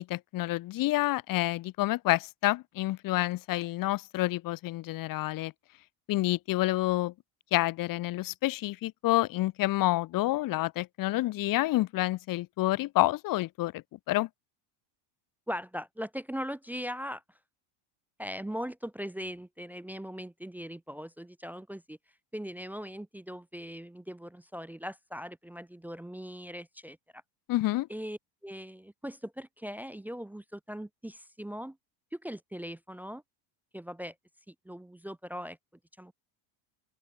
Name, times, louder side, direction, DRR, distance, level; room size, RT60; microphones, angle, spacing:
voice 1, 0.0-5.5 6.1-7.1 7.5-14.3 27.5-27.9, left 17 dB, 45° left, 1.3 m, -28 dB
voice 2, 15.5-17.2 18.2-22.0 22.3-27.2 27.9-31.8 32.1-33.2 33.7-34.1 34.5-35.6 36.0-36.1, equal, 5° right, 0.6 m, -40 dB
open air
cardioid pair, 160°, 49 cm